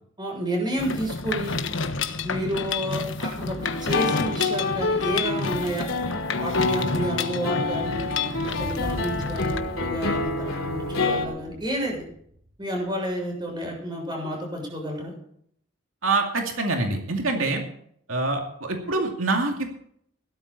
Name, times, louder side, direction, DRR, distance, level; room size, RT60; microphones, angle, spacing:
voice 1, 0.2-1.6 2.2-5.9 6.4-8.0 8.4-12.0 12.6-15.1, equal, 20° right, 0 dB, 6.9 m, -30 dB
Mechanisms, 0.8-9.6, left 4 dB, 65° left, 1.2 m, -30 dB
sound 1, 3.6-11.3, left 3 dB, 85° left, 3.3 m, -27 dB
sound 2, 8.6-13.0, equal, 45° right, 5.5 m, -38 dB
voice 2, 16.0-17.6 18.1-19.7, right 3 dB, 80° right, 2 dB, 2.5 m, -25 dB
17.0 x 13.0 x 4.2 m, 0.67 s
head